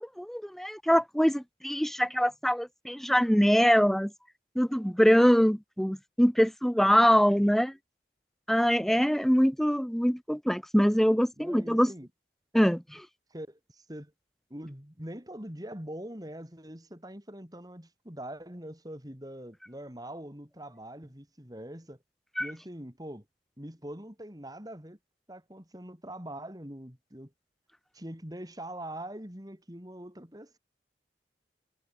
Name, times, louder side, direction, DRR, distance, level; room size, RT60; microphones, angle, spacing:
voice 1, 0.0-4.1 4.5-7.7 8.5-11.9 12.5-13.1 22.4-22.5, equal, ahead, 0.8 m, -24 dB
voice 2, 11.4-12.1 13.3-14.1 14.5-22.0 22.4-23.2 23.6-25.0 25.3-27.3 27.9-30.6, right 1 dB, 20° right, 4.9 m, -43 dB
head